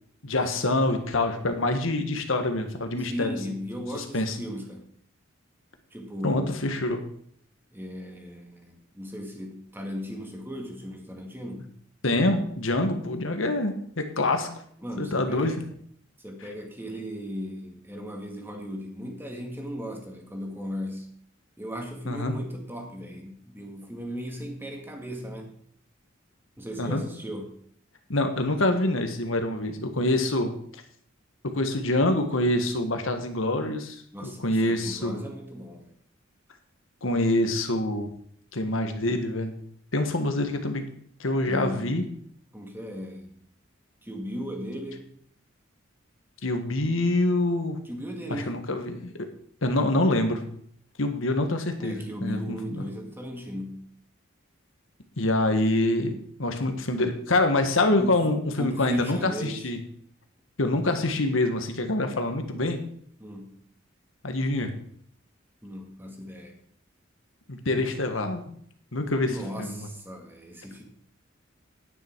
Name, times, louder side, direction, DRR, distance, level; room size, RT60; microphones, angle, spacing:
voice 1, 0.2-3.3 3.9-4.4 6.2-7.0 12.0-14.5 15.0-15.5 22.1-22.3 26.8-27.0 28.1-30.5 31.4-35.2 37.0-38.1 38.5-39.6 39.9-40.8 41.2-42.0 46.4-47.8 48.3-49.3 49.6-50.4 51.0-52.8 55.2-59.8 60.6-62.8 64.2-64.7 67.5-68.4 68.9-69.9, left 2 dB, 85° left, 6 dB, 1.6 m, -26 dB
voice 2, 3.0-4.8 5.9-6.7 7.7-11.7 14.8-15.6 16.2-21.1 21.6-25.5 26.6-27.6 34.1-35.9 41.4-42.0 42.5-43.3 44.0-45.1 47.9-48.6 51.8-53.8 58.0-59.7 63.2-63.5 65.6-66.6 69.3-70.8, equal, 10° right, 2 dB, 2.0 m, -37 dB
10.0 x 9.8 x 4.7 m, 0.63 s
head